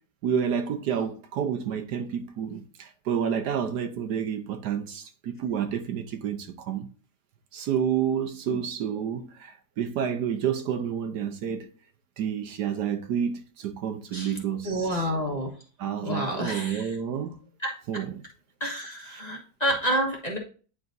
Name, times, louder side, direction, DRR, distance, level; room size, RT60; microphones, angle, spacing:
voice 1, 0.2-6.9 7.5-11.7 12.2-14.9 15.8-17.4 17.9-18.1, right 8 dB, 70° right, 1.3 m, -29 dB
voice 2, 14.6-15.5 16.0-17.0 17.6-17.8 18.6-20.4, equal, 25° left, 1.3 m, -29 dB
9.6 x 5.0 x 2.6 m
omnidirectional pair, 1.9 m